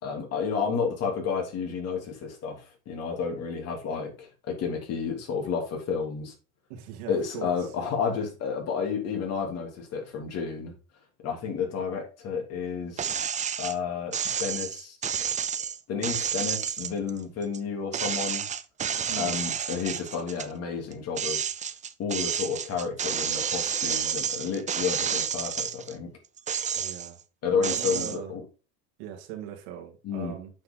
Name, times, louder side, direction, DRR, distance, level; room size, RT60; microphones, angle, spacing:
voice 1, 0.0-6.3 7.1-10.7 11.2-13.2 13.6-15.0 15.9-18.5 19.1-21.5 22.0-26.1 27.4-28.4 30.0-30.3, left 6 dB, 50° left, 3.1 m, -31 dB
voice 2, 6.7-7.7 19.1-19.4 26.7-27.2 27.5-28.3 29.0-30.5, right 10 dB, 80° right, 2.6 m, -40 dB
sound 1, 13.0-13.7 14.1-17.6 17.9-20.5 20.9-25.9 26.4-27.2 27.6-28.2, right 8 dB, 25° right, 0.6 m, -30 dB
8.7 x 5.7 x 3.8 m
supercardioid pair, 115°, 31 cm